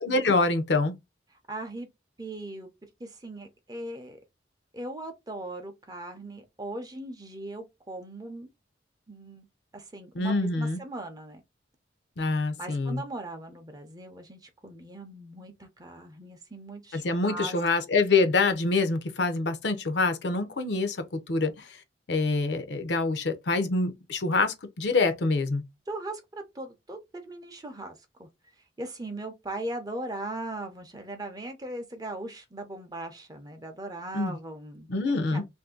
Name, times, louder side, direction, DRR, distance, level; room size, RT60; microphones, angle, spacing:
voice 1, 0.0-0.9 10.1-10.8 12.2-13.0 16.9-21.8 22.1-25.6 34.1-34.4 34.9-35.5, left 3 dB, 65° left, 0.6 m, -26 dB
voice 2, 1.5-1.9 2.2-2.7 3.0-4.2 4.7-8.5 9.1-9.5 9.7-11.4 12.6-17.6 25.9-26.2 26.5-28.3 28.8-34.9 35.3-35.5, right 2 dB, 20° right, 0.6 m, -39 dB
2.6 x 2.6 x 3.7 m
head